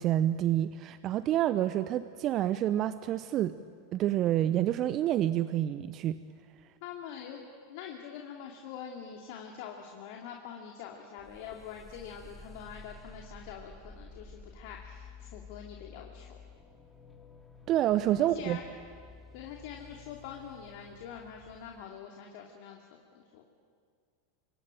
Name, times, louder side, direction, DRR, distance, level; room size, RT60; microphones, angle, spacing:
voice 1, 0.0-3.6 3.9-6.2 17.7-18.6, right 12 dB, 40° right, 13 dB, 0.8 m, -28 dB
voice 2, 6.8-7.4 7.7-16.4 18.3-18.6 19.3-22.8 23.1-23.4, left 8 dB, 55° left, 1 dB, 2.7 m, -45 dB
sound 1, 11.2-21.8, left 4 dB, 10° left, 3.3 m, -52 dB
26.5 x 23.5 x 9.1 m, 2.1 s
figure-of-eight pair, 90°, 0 cm